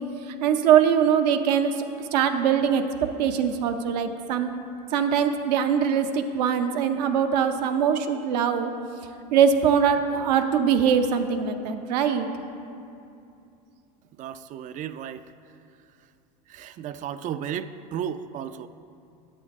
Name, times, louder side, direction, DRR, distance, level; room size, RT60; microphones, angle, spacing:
voice 1, 0.4-1.7 2.1-2.8 3.2-4.5 4.9-8.7 9.3-12.3, right 8 dB, 80° right, 7 dB, 0.7 m, -22 dB
voice 2, 14.2-15.2 16.5-18.7, right 9 dB, 40° right, 13 dB, 0.4 m, -34 dB
8.7 x 7.6 x 3.6 m, 2.6 s
supercardioid pair, 100°, 21 cm